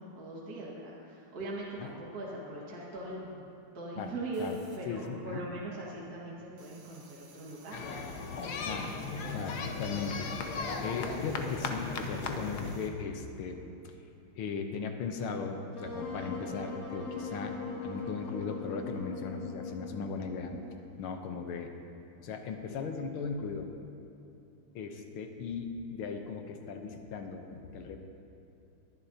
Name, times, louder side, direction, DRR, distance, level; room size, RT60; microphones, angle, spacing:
voice 1, 0.0-3.5 3.7-8.0, right 2 dB, 45° right, -5 dB, 2.1 m, -40 dB
sound 1, 4.3-5.6 5.8-12.9, right 4 dB, 80° right, 2.3 m, -59 dB
voice 2, 4.9-5.4 8.7-8.9 9.3-10.5 10.8-13.6 14.4-17.6 17.8-20.5 21.0-21.7 22.2-23.7 24.8-28.0, left 5 dB, 80° left, 5 dB, 1.7 m, -38 dB
sound 2, 7.7-12.8, left 4 dB, 60° left, 1.2 m, -36 dB
Wind instrument woodwind instrument, 15.7-20.8, left 3 dB, 40° left, 2.3 m, -40 dB
21.0 x 11.0 x 2.8 m, 2.9 s
omnidirectional pair, 2.4 m